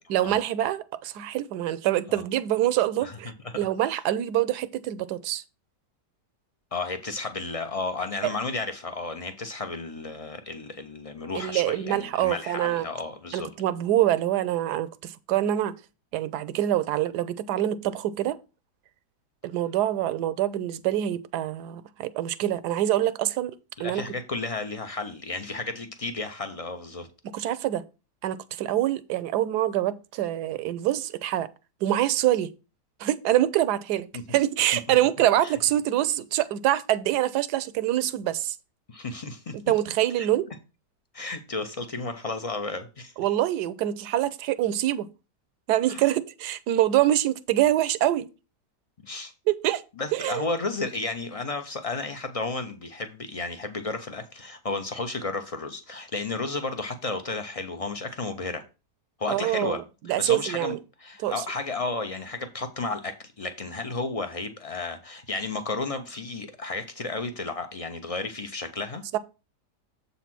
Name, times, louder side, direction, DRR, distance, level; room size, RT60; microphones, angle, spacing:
voice 1, 0.1-5.4 8.2-8.3 11.3-12.9 13.3-15.7 16.1-18.4 19.4-23.5 23.8-24.0 27.3-27.8 28.2-31.5 31.8-32.5 33.0-38.6 39.5-40.5 43.2-45.1 45.7-48.3 49.5-49.8 50.1-50.4 59.3-59.8 60.1-60.8 61.2-61.3 69.1-69.2, right 13 dB, 75° right, 1.1 m, -25 dB
voice 2, 6.7-13.5 23.8-27.1 34.1-34.2 35.4-35.5 38.9-39.5 40.2-40.3 41.1-43.1 45.9-46.1 49.0-49.3 50.0-58.6 59.2-59.8 60.2-69.0, left 3 dB, 65° left, 0.3 m, -33 dB
7.4 x 4.1 x 5.9 m
omnidirectional pair, 1.8 m